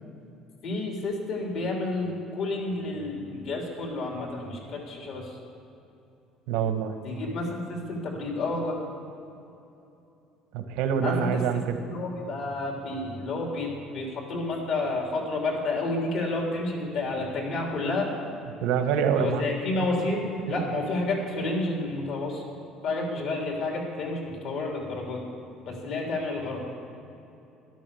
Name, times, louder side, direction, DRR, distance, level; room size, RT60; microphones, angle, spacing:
voice 1, 0.6-5.3 7.0-8.8 11.0-11.3 11.8-18.1 19.1-22.4 22.8-25.2 25.7-26.6, left 2 dB, 60° left, 0 dB, 3.4 m, -30 dB
voice 2, 6.5-6.9 10.5-11.8 18.6-19.4, right 7 dB, 85° right, 7 dB, 1.2 m, -25 dB
12.5 x 11.5 x 7.1 m, 2.8 s
cardioid pair, 150°, 0 cm